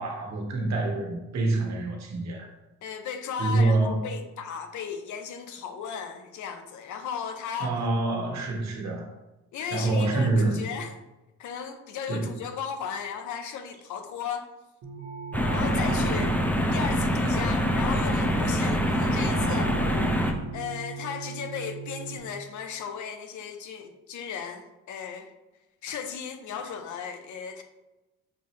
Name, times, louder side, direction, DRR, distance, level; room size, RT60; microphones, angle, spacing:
voice 1, 0.0-2.5 3.4-4.0 7.6-9.1 9.7-10.6 12.1-12.3, right 2 dB, 60° right, 1 dB, 1.2 m, -26 dB
voice 2, 2.8-7.8 9.5-10.9 11.4-14.5 15.5-16.4 16.7-19.7 20.5-25.3 25.8-27.6, left 7 dB, 75° left, 7 dB, 0.7 m, -36 dB
sound 1, 14.8-22.2, right 5 dB, 80° right, 1.0 m, -37 dB
sound 2, 15.3-20.3, equal, 5° left, 0.6 m, -25 dB
6.3 x 2.7 x 3.1 m, 1.0 s
cardioid pair, 90°, 30 cm